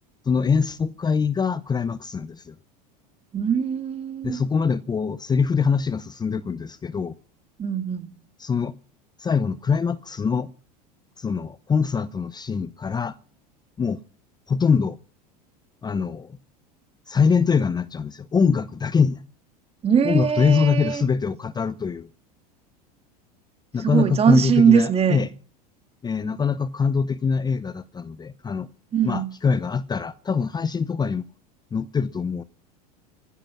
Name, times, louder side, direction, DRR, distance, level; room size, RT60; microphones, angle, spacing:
voice 1, 0.2-2.5 4.2-7.1 8.4-8.7 9.2-10.5 11.2-13.2 13.8-14.0 14.5-15.0 15.8-16.4 17.1-19.2 20.0-22.1 23.7-25.3 26.0-28.7 29.0-31.2 31.7-32.4, left 5 dB, 20° left, 0.7 m, -23 dB
voice 2, 3.3-4.4 7.6-8.1 19.8-21.0 23.8-25.3 28.9-29.3, right 7 dB, 30° right, 2.0 m, -21 dB
15.5 x 13.0 x 6.0 m
hypercardioid pair, 90°, 21 cm